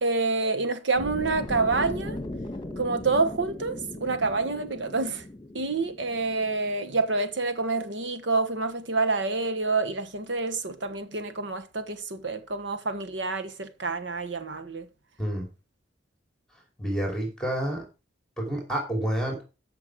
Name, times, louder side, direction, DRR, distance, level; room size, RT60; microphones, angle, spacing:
voice 1, 0.0-2.2 2.8-5.2 5.5-14.9, right 3 dB, 70° right, 1.3 m, -27 dB
sound 1, 1.0-7.1, left 1 dB, 25° left, 1.8 m, -38 dB
voice 2, 16.8-17.8 18.4-19.4, right 1 dB, 5° left, 2.8 m, -28 dB
14.0 x 5.8 x 4.7 m
head